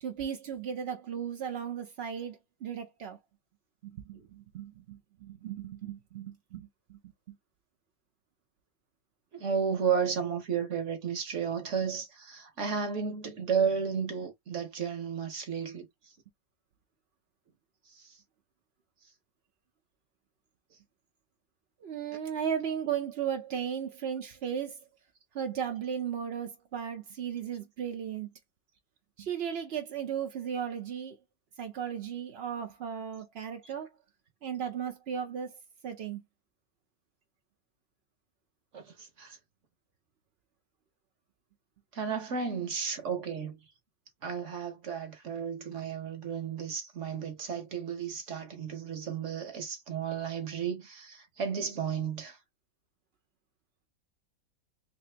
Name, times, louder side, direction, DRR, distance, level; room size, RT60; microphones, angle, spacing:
voice 1, 0.0-3.2 3.9-7.0 21.8-24.8 25.3-28.3 29.2-31.2 31.6-33.9 34.4-35.5 35.8-36.2, right 8 dB, 75° right, 0.5 m, -36 dB
voice 2, 9.3-15.9 17.9-18.2 38.7-39.4 41.9-43.6 44.2-52.4, right 6 dB, 50° right, 1.1 m, -33 dB
3.3 x 2.8 x 3.3 m
omnidirectional pair, 1.9 m